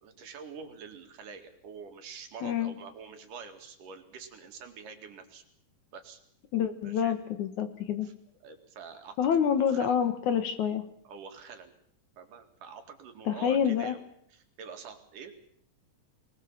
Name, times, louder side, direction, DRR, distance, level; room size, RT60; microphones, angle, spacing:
voice 1, 0.0-5.4 5.9-6.2 6.8-7.1 8.0-8.1 8.4-9.2 9.4-10.0 11.1-11.7 12.2-14.0 14.3-15.5, right 5 dB, 65° right, 5 dB, 3.7 m, -46 dB
voice 2, 2.4-2.7 6.5-8.1 9.2-10.8 13.3-14.0, left 8 dB, 65° left, 9 dB, 2.6 m, -27 dB
24.0 x 19.5 x 7.4 m, 0.70 s
omnidirectional pair, 4.0 m